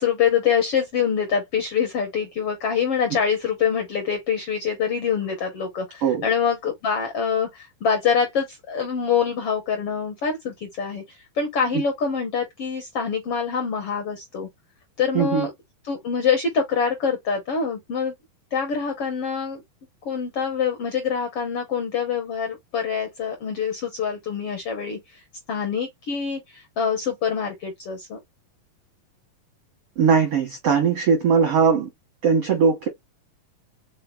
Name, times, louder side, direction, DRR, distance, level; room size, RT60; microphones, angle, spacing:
voice 1, 0.0-14.5 15.0-15.5 15.8-18.1 18.5-19.6 20.0-25.2 25.5-28.2, left 6 dB, 70° left, 1.4 m, -25 dB
voice 2, 15.1-15.5 30.0-31.9 32.2-32.9, right 6 dB, 75° right, 1.3 m, -19 dB
5.4 x 3.8 x 2.3 m
omnidirectional pair, 4.1 m